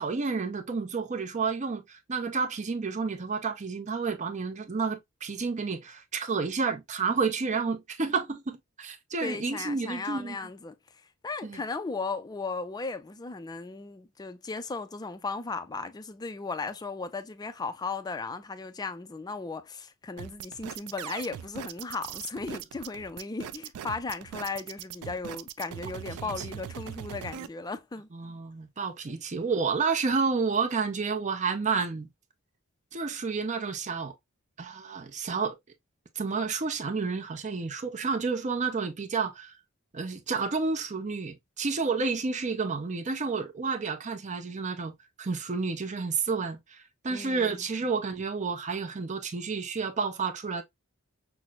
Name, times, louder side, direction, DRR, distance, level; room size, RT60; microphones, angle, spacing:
voice 1, 0.0-10.4 11.4-11.6 26.2-26.4 28.1-32.1 32.9-34.1 34.6-35.5 36.2-39.5 39.9-50.6, right 4 dB, 35° right, 0.6 m, -30 dB
voice 2, 9.2-10.7 11.2-28.1 47.1-47.6, left 4 dB, 20° left, 0.3 m, -36 dB
sound 1, 20.2-27.5, right 9 dB, 85° right, 0.3 m, -40 dB
5.9 x 2.0 x 2.3 m
head